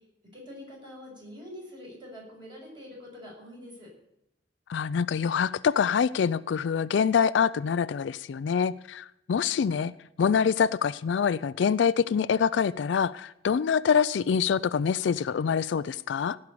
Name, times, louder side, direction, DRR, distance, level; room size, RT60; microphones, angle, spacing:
voice 1, 0.3-3.9, left 1 dB, 25° right, -3 dB, 5.9 m, -45 dB
voice 2, 4.7-9.9 10.2-16.4, left 7 dB, 70° left, 17 dB, 0.4 m, -25 dB
16.5 x 5.4 x 8.4 m, 0.79 s
head